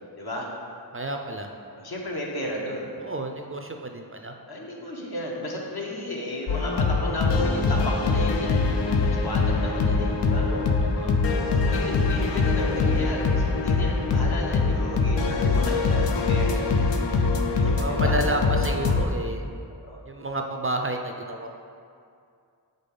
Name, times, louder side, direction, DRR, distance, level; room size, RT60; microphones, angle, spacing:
voice 1, 0.2-0.5 1.7-2.9 4.5-8.7 9.0-10.5 11.5-16.8 17.6-18.5 19.7-20.0, left 1 dB, 60° left, -2 dB, 1.1 m, -33 dB
voice 2, 0.9-1.5 3.0-4.3 10.3-11.2 17.8-19.4 20.1-21.5, right 1 dB, 30° right, 4 dB, 0.4 m, -31 dB
sound 1, 6.5-19.1, left 4 dB, 75° left, 0.6 m, -23 dB
5.3 x 3.9 x 5.2 m, 2.4 s
wide cardioid pair, 45°, 43 cm